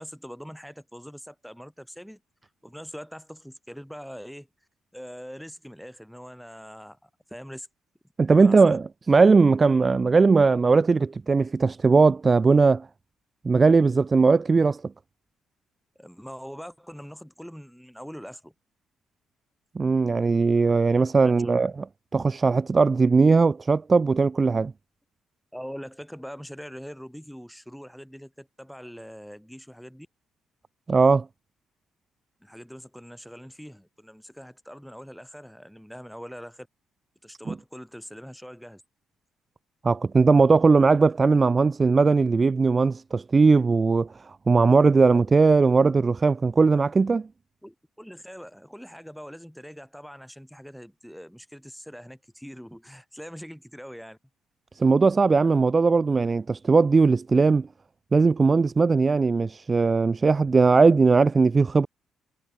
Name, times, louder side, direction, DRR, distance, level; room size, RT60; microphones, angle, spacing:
voice 1, 0.0-4.5 4.9-7.7 8.3-8.8 16.0-18.5 21.2-21.6 25.5-30.1 32.4-36.7 37.2-38.8 47.6-54.2, equal, ahead, 1.8 m, -42 dB
voice 2, 8.2-12.9 13.4-14.8 19.8-21.7 22.1-24.7 30.9-31.3 39.8-47.3 54.8-57.7 58.1-61.9, right 4 dB, 30° right, 0.5 m, -19 dB
cardioid pair, 90°, 0 cm